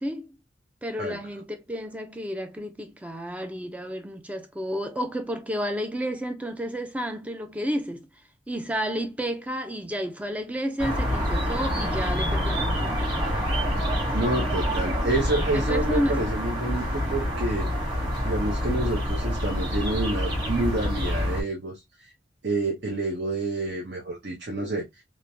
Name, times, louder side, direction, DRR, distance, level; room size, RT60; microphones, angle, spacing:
voice 1, 0.8-8.1 8.5-13.5 15.5-16.2, equal, 10° right, 0.4 m, -31 dB
sound 1, 10.8-21.4, equal, 25° right, 1.2 m, -27 dB
voice 2, 14.1-22.1 22.4-24.8, right 2 dB, 60° right, 0.7 m, -29 dB
3.1 x 2.1 x 2.5 m
head